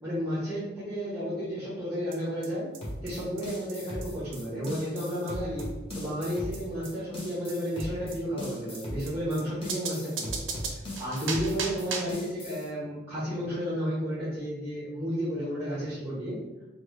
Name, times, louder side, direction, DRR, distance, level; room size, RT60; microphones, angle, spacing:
voice 1, 0.0-2.7 3.0-5.7 5.9-10.4 10.7-16.4, equal, 5° right, -8 dB, 0.8 m, -32 dB
sound 1, 2.1-2.2 2.4-2.5 2.7-2.8 3.1-3.2 3.4-3.5 3.7-3.8 4.0-4.1 4.3-4.4 4.6-4.7 5.0-5.1 5.3-5.4 5.6-5.7 5.9-6.0 6.2-6.3 6.5-6.6 6.9-7.0 7.2-7.3 7.5-7.6 7.8-7.9 8.1-8.2 8.4-8.5 8.7-8.8 9.1-9.2 9.4-9.5 9.7-12.2, right 5 dB, 70° right, 0.5 m, -36 dB
sound 2, 2.8-12.7, left 1 dB, 30° left, 0.8 m, -39 dB
2.9 x 2.3 x 3.1 m, 1.0 s
head